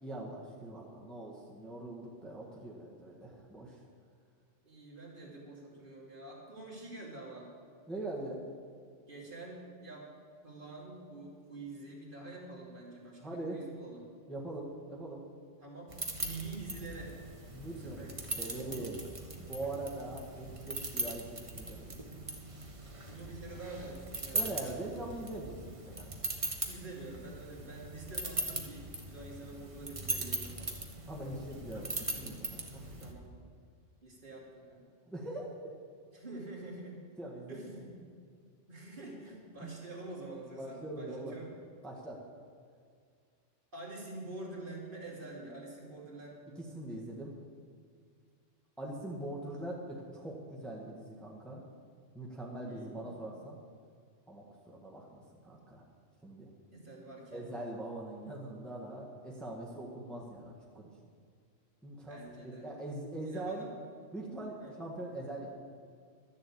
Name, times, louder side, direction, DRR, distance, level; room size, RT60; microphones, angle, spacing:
voice 1, 0.0-3.8 7.9-8.4 13.2-13.6 14.3-15.2 17.5-18.0 18.4-19.0 19.4-21.9 24.3-26.1 31.1-33.1 35.0-35.7 37.2-37.8 40.6-41.3 41.8-42.3 46.6-47.4 48.8-51.6 52.1-53.6 54.3-55.9 56.2-56.5 57.3-60.9 61.8-62.2 62.4-63.7 64.1-65.5, right 1 dB, ahead, -3 dB, 1.6 m, -42 dB
voice 2, 4.6-7.5 9.1-10.1 10.4-14.1 15.6-17.1 17.7-18.3 18.6-19.0 23.1-24.8 26.6-30.8 33.0-33.3 34.0-34.8 36.1-37.0 37.5-38.0 38.7-41.5 43.7-46.4 46.9-47.1 52.6-53.1 56.7-57.5 62.1-62.7 63.2-63.7 64.6-64.7, right 2 dB, 40° right, -3 dB, 2.7 m, -47 dB
sound 1, 15.9-33.1, right 2 dB, 25° right, 1.2 m, -40 dB
12.0 x 7.4 x 8.6 m, 2.1 s
omnidirectional pair, 1.3 m